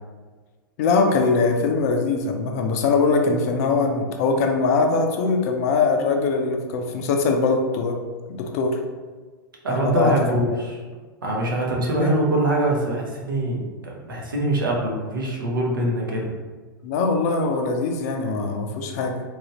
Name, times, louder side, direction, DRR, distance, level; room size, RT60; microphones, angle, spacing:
voice 1, 0.8-8.0 8.3-8.8 9.7-10.1 12.0-12.1 16.8-19.2, left 4 dB, 45° left, 3 dB, 0.5 m, -22 dB
voice 2, 9.6-10.8 11.2-16.3, right 1 dB, 70° right, -2 dB, 0.8 m, -23 dB
3.0 x 2.5 x 2.9 m, 1.4 s
figure-of-eight pair, 100°, 11 cm